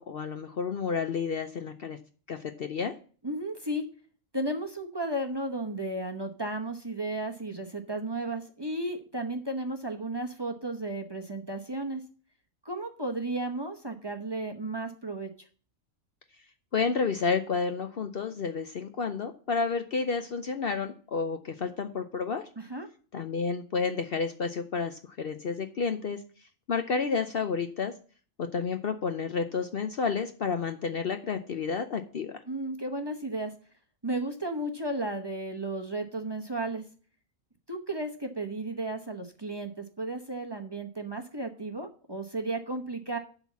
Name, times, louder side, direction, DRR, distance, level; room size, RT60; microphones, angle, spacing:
voice 1, 0.0-2.0 2.3-2.9 16.7-22.5 23.1-26.2 26.7-27.9 28.4-32.3, left 5 dB, 55° left, 8 dB, 0.8 m, -30 dB
voice 2, 3.2-3.9 4.3-12.0 12.6-15.5 22.6-22.9 32.5-33.5 34.0-36.8 37.7-43.2, right 2 dB, 20° right, 5 dB, 0.9 m, -34 dB
11.0 x 4.0 x 7.2 m, 0.41 s
omnidirectional pair, 1.4 m